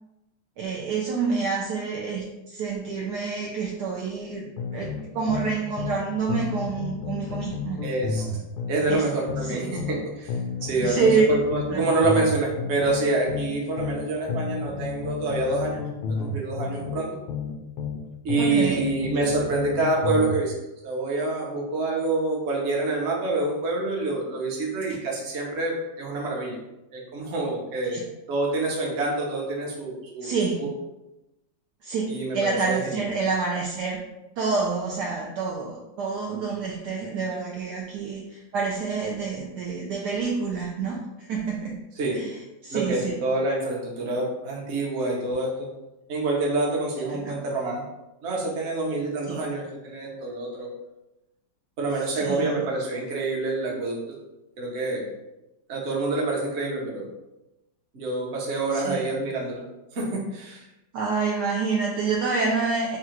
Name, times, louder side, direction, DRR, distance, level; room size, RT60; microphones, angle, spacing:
voice 1, 0.6-7.8 8.9-9.1 9.4-9.8 10.8-11.3 11.7-11.8 18.4-18.8 27.9-28.0 30.2-30.6 31.8-34.0 34.4-41.8 42.1-42.4 42.6-43.2 47.1-47.5 49.3-49.4 52.1-52.5 58.7-59.1 60.9-63.0, right 4 dB, 75° right, -2 dB, 1.0 m, -27 dB
sound 1, 4.6-6.0 6.3-10.0 10.3-14.0 14.3-18.0 18.3-20.4, left 5 dB, 80° left, 1.3 m, -31 dB
voice 2, 7.8-8.2 8.7-15.8 16.0-17.2 18.2-20.5 20.8-26.6 26.9-30.3 30.6-30.7 32.1-32.4 32.7-33.0 42.0-42.2 42.7-45.7 46.1-47.8 48.2-50.7 51.8-54.0 54.6-55.1 55.7-57.1 57.9-59.6 59.9-60.7, right 2 dB, 45° right, -2 dB, 1.0 m, -27 dB
3.7 x 2.3 x 4.4 m, 0.96 s
omnidirectional pair, 2.0 m